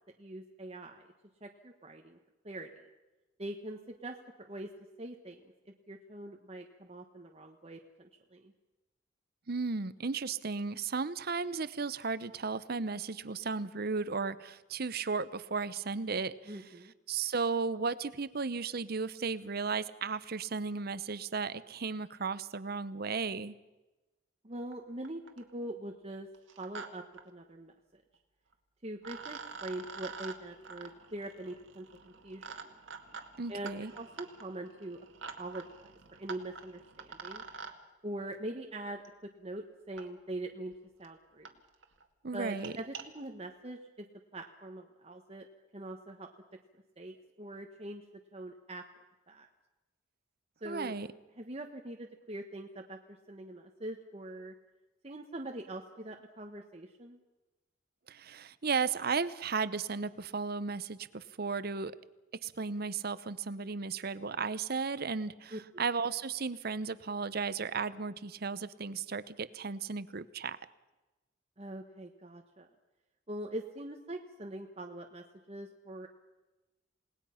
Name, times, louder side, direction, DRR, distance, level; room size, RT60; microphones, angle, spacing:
voice 1, 0.2-1.1 1.4-2.2 2.4-2.7 3.4-4.7 5.0-5.4 5.9-8.5 16.5-16.9 24.4-26.3 26.6-28.0 28.8-32.6 33.5-35.0 35.4-35.9 36.2-37.4 38.0-39.0 39.4-40.7 41.0-41.5 42.3-44.1 44.3-45.5 45.7-46.3 47.0-48.0 48.3-48.8 49.3-49.5 50.6-50.9 51.4-53.0 53.3-54.5 55.0-57.2 65.5-65.8 71.6-72.7 73.3-76.1, right 1 dB, 30° right, 2 dB, 1.3 m, -43 dB
voice 2, 9.5-16.6 17.1-23.6 33.4-33.9 42.2-42.7 50.6-51.1 58.1-61.9 62.4-70.6, right 4 dB, 50° right, 15 dB, 0.8 m, -35 dB
sound 1, 24.7-24.8 25.0-25.5 26.3-26.9 27.1-27.2 28.5-28.6 29.0-37.7 39.0-39.1 40.0-40.1 40.7-40.8 41.0-41.1 41.4-41.5 41.8-42.0 42.4-43.0, right 5 dB, 75° right, 2.0 m, -47 dB
28.5 x 19.5 x 5.8 m, 1.1 s
head